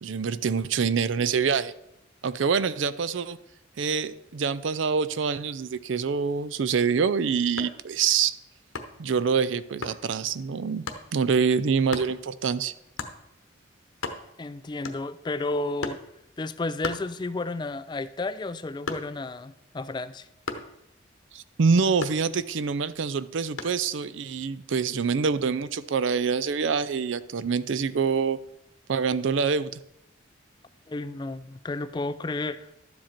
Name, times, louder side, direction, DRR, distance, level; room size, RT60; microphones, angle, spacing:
voice 1, 0.0-1.7 2.2-3.4 3.8-8.4 9.0-10.9 11.1-12.7 21.3-28.4 28.9-29.8, right 5 dB, 70° right, 15 dB, 0.5 m, -25 dB
sound 1, 7.5-7.9 8.7-9.1 9.8-10.0 10.9-11.1 11.9-12.2 13.0-13.2 13.6-13.7 13.9-14.5 14.8-15.3 15.8-16.1 16.8-17.6 18.0-19.3 20.5-20.8 22.0-22.7 23.6-23.9, left 3 dB, 80° left, 1.0 m, -35 dB
voice 2, 14.4-16.0 16.4-20.3 30.9-32.7, left 2 dB, 20° left, 14 dB, 0.3 m, -32 dB
12.0 x 7.5 x 4.4 m, 0.82 s
head